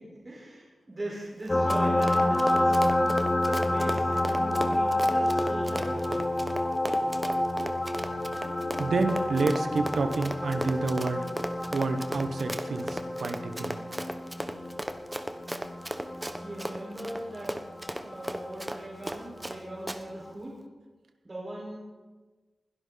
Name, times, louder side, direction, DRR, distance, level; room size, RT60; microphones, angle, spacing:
voice 1, 0.0-3.0 3.5-6.1 16.4-17.6 17.9-20.6 21.2-21.8, right 1 dB, 35° right, -5 dB, 4.9 m, -40 dB
Run, 1.4-19.6 19.9-20.0, right 1 dB, 15° right, 1.1 m, -36 dB
sound 1, 1.5-18.7 20.3-20.4, left 1 dB, 30° left, 1.7 m, -29 dB
voice 2, 8.1-11.3 11.7-13.8, right 3 dB, 80° right, 8 dB, 1.3 m, -29 dB
21.0 x 12.0 x 4.1 m, 1.3 s
cardioid pair, 60°, 0 cm